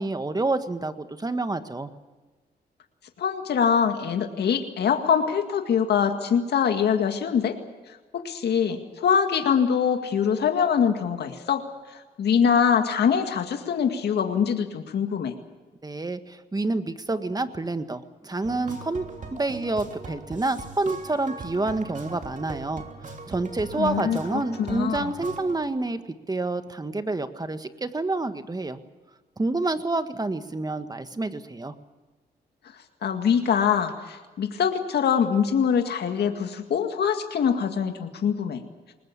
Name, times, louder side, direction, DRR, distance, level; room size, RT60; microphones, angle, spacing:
voice 1, 0.0-1.9 15.8-19.1 19.3-26.0 26.3-28.8 29.4-31.7, right 2 dB, 20° right, 9 dB, 1.7 m, -28 dB
voice 2, 3.2-7.6 7.9-15.3 23.8-24.2 24.6-25.1 33.0-38.6, left 7 dB, 70° left, 5 dB, 2.1 m, -24 dB
sound 1, 18.4-25.6, right 4 dB, 45° right, 3.2 m, -40 dB
21.0 x 20.0 x 8.4 m, 1.3 s
cardioid pair, 75°, 18 cm